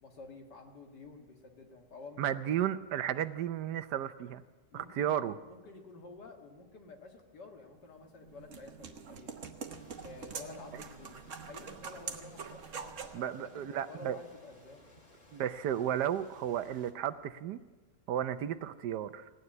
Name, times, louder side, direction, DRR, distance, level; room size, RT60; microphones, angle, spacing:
voice 1, 0.0-2.2 4.7-9.3 10.0-11.2 11.5-14.9, left 3 dB, 75° left, 2 dB, 2.5 m, -51 dB
voice 2, 2.2-4.4 4.7-5.4 13.1-14.2 15.3-17.6 18.1-19.3, right 10 dB, 75° right, 12 dB, 1.2 m, -33 dB
sound 1, 8.0-13.2, right 6 dB, 50° right, 1.3 m, -44 dB
sound 2, 9.7-16.9, left 2 dB, 20° left, 2.0 m, -60 dB
17.0 x 9.6 x 8.8 m, 1.3 s
omnidirectional pair, 1.9 m